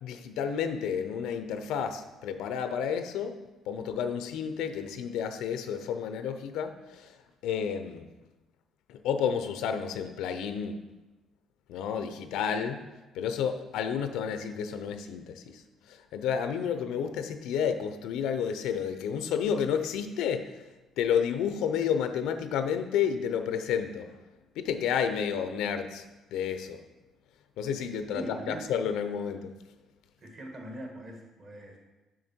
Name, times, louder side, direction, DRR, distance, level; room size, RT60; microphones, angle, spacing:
voice 1, 0.0-3.4 3.7-7.2 7.4-8.1 8.9-10.8 11.7-12.8 13.1-15.6 15.9-20.5 21.0-24.2 24.6-26.0 26.3-26.8 27.6-29.5, left 7 dB, 90° left, 8 dB, 0.6 m, -31 dB
voice 2, 28.1-28.7 30.2-31.8, right 1 dB, 40° right, 1 dB, 1.6 m, -41 dB
6.5 x 6.4 x 4.4 m, 1.1 s
cardioid pair, 150°, 0 cm